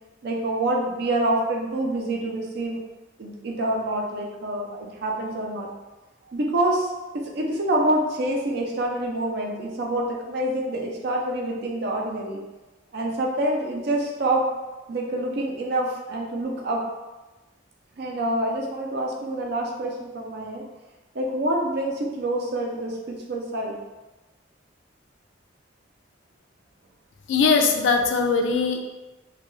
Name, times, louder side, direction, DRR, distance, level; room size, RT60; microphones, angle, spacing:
voice 1, 0.2-2.8 3.2-5.7 6.3-6.9 7.2-12.4 12.9-14.4 14.9-16.8 18.0-20.6 21.1-23.7, right 1 dB, 55° right, -1 dB, 0.5 m, -26 dB
voice 2, 27.3-28.8, left 4 dB, 75° left, 3 dB, 0.3 m, -20 dB
2.3 x 2.2 x 3.0 m, 1.1 s
head